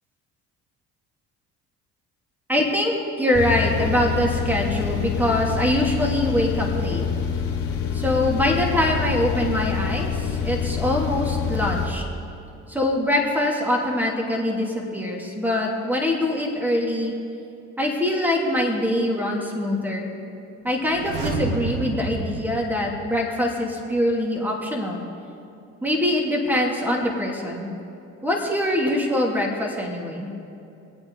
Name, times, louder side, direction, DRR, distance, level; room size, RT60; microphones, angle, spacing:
voice 1, 2.5-7.0 7.9-12.1 12.7-17.1 17.8-20.1 20.6-25.0 25.8-27.7 28.2-30.3, left 1 dB, 5° right, -1 dB, 2.8 m, -23 dB
sound 1, 3.3-11.9, left 7 dB, 40° left, 2.5 m, -26 dB
sound 2, 20.8-23.7 24.0-24.1, right 4 dB, 85° right, 1.4 m, -31 dB
25.5 x 8.8 x 4.0 m, 2.7 s
supercardioid pair, 75°, 35 cm